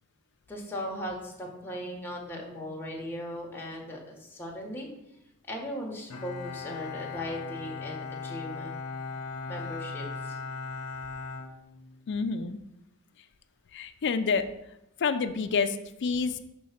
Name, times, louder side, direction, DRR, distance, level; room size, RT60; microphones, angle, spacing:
voice 1, 0.5-4.9 5.5-8.8 9.5-10.4, equal, 10° left, -2 dB, 1.1 m, -38 dB
Bowed string instrument, 6.1-12.3, left 4 dB, 90° left, 0.8 m, -38 dB
voice 2, 12.1-12.6 13.7-14.4 15.0-15.8 16.0-16.4, left 5 dB, 55° left, 9 dB, 0.4 m, -28 dB
6.1 x 3.1 x 5.7 m, 0.86 s
head